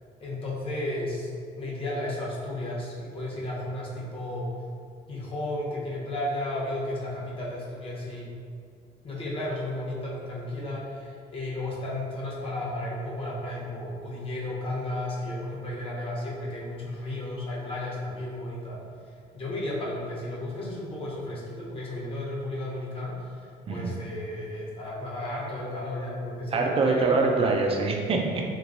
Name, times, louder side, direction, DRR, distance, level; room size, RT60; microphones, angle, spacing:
voice 1, 0.2-4.5 5.1-8.3 9.0-18.8 19.3-27.4, left 1 dB, 35° left, -5 dB, 0.9 m, -33 dB
voice 2, 26.5-28.4, right 3 dB, 35° right, 1 dB, 0.4 m, -24 dB
3.0 x 2.9 x 2.5 m, 2.2 s
cardioid pair, 110°, 17 cm